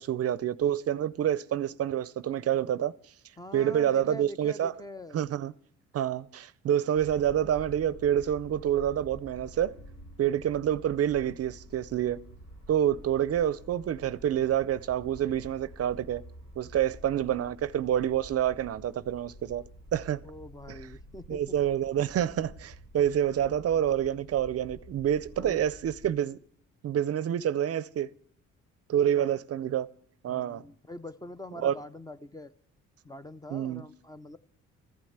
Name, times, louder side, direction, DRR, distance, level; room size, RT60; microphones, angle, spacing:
voice 1, 0.0-2.9 3.5-4.7 5.1-5.5 5.9-9.7 10.2-12.2 12.7-16.2 16.6-19.6 19.9-20.2 20.7-20.8 21.3-26.4 26.8-28.1 28.9-29.9 30.2-30.6 31.6-31.7 33.5-33.8, right 10 dB, 50° right, 0.5 m, -27 dB
voice 2, 3.4-5.2 20.2-21.6 23.5-24.0 25.4-25.6 29.2-29.4 30.3-32.5 33.0-34.4, equal, 15° left, 0.5 m, -44 dB
sound 1, 6.9-26.2, equal, 85° left, 6.2 m, -49 dB
14.5 x 9.4 x 7.9 m
cardioid pair, 90°, 30 cm